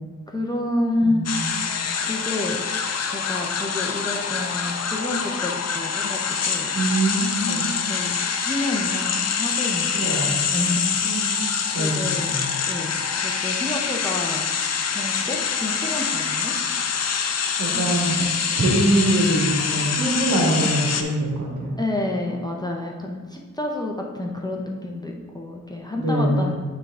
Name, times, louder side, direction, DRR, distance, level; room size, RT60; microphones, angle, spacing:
voice 1, 0.3-1.3 2.0-2.6 3.1-6.7 7.5-10.2 10.5-10.9 11.2-11.5 11.8-12.4 12.7-14.5 14.9-16.5 17.7-17.8 18.2-18.3 21.8-26.5, left 1 dB, 15° left, -1 dB, 0.6 m, -29 dB
voice 2, 1.0-1.6 6.7-7.8 9.9-10.4 11.0-11.4 11.7-12.4 17.6-18.2 18.5-21.8 25.9-26.5, right 1 dB, 65° right, -3 dB, 1.8 m, -23 dB
sound 1, 1.3-21.0, left 6 dB, 55° left, 0.6 m, -25 dB
9.2 x 3.4 x 3.7 m, 1.4 s
wide cardioid pair, 105°, 31 cm